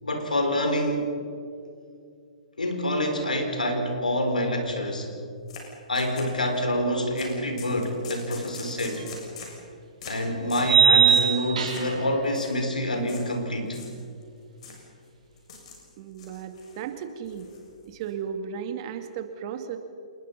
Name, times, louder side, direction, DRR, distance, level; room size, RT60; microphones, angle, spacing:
voice 1, 0.0-1.1 2.6-5.1 5.9-9.1 10.0-13.8, left 1 dB, 90° left, 5 dB, 4.5 m, -27 dB
sound 1, 5.5-5.6 5.9-6.6 7.2-7.3 7.6-9.6 10.0-10.2 10.5-10.7 11.1-11.3 11.7-11.9 12.2-12.5 13.1-13.3 13.7-14.2 14.6-14.8 15.4-15.8 16.1-16.8 17.2-18.1, left 5 dB, 55° left, 7.1 m, -42 dB
sound 2, 9.0-9.1 10.6-12.1, right 7 dB, 65° right, 5.1 m, -20 dB
voice 2, 16.0-17.5 17.9-19.8, right 7 dB, 40° right, 8 dB, 2.3 m, -35 dB
27.5 x 21.0 x 5.6 m, 2.4 s
hypercardioid pair, 130°, 4 cm